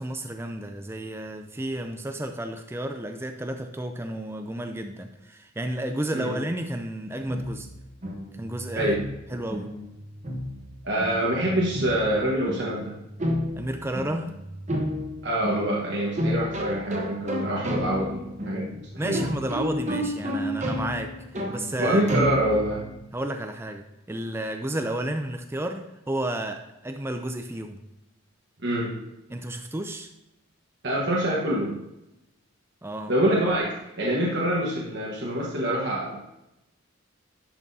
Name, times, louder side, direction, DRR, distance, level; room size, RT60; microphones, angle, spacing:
voice 1, 0.0-7.7 8.4-9.0 9.3-9.7 13.6-14.3 19.0-22.0 23.1-27.8 29.3-30.1 32.8-33.1, right 1 dB, 10° right, 5 dB, 0.4 m, -32 dB
sound 1, 7.3-23.0, equal, 30° right, 1.0 m, -32 dB
voice 2, 10.8-12.9 15.2-19.2 21.8-22.8 28.6-28.9 30.8-31.7 33.1-36.3, right 1 dB, 50° right, -5 dB, 1.3 m, -25 dB
10.5 x 5.9 x 2.7 m, 0.91 s
head